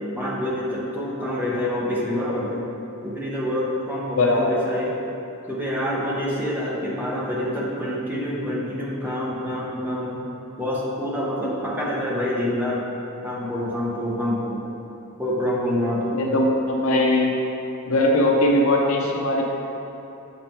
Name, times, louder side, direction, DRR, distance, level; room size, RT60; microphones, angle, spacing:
voice 1, 0.2-2.6 3.0-5.0 5.5-10.3 10.6-12.8 13.2-14.6 15.2-16.2, left 1 dB, 10° right, -6 dB, 0.9 m, -26 dB
voice 2, 16.1-17.3 17.9-19.4, left 1 dB, 75° left, 0 dB, 0.7 m, -20 dB
7.6 x 5.3 x 2.9 m, 2.9 s
head